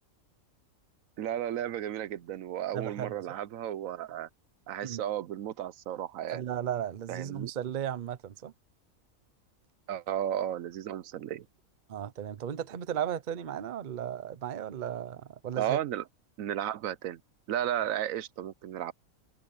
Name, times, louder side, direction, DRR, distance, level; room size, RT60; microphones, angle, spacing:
voice 1, 1.2-4.3 4.7-6.4 7.1-7.5 9.9-11.5 15.5-16.0 16.4-17.2 17.5-18.9, right 11 dB, 75° right, 1.0 m, -34 dB
voice 2, 2.7-3.2 4.8-5.0 6.3-8.5 11.9-15.8, right 9 dB, 45° right, 0.7 m, -35 dB
omnidirectional pair, 1.5 m